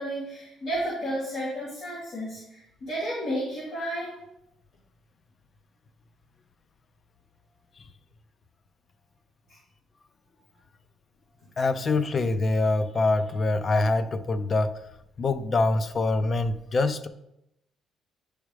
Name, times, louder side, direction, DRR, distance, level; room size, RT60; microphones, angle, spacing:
voice 1, 0.0-4.1, equal, 55° left, -9 dB, 2.7 m, -32 dB
voice 2, 11.6-14.7 15.2-17.1, left 2 dB, 30° left, 12 dB, 0.4 m, -24 dB
10.0 x 4.8 x 3.2 m, 0.85 s
cardioid pair, 145°, 0 cm